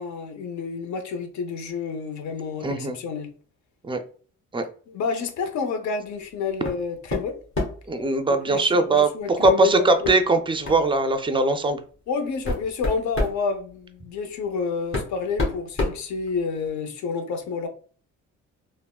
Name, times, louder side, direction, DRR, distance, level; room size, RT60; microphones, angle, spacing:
voice 1, 0.0-3.3 4.9-7.3 8.3-10.1 12.1-17.7, left 5 dB, 70° left, 0.7 m, -29 dB
voice 2, 2.6-3.0 3.8-4.0 4.5-4.7 7.9-11.8, right 2 dB, 15° right, 0.4 m, -21 dB
sound 1, 6.6-6.8 7.1-7.9 9.4-9.6 10.0-10.2 10.6-10.8 11.7-11.8 12.2-13.4 14.4-14.5 14.9-16.7, left 2 dB, 45° left, 1.2 m, -28 dB
3.4 x 2.1 x 2.3 m
cardioid pair, 90°, 30 cm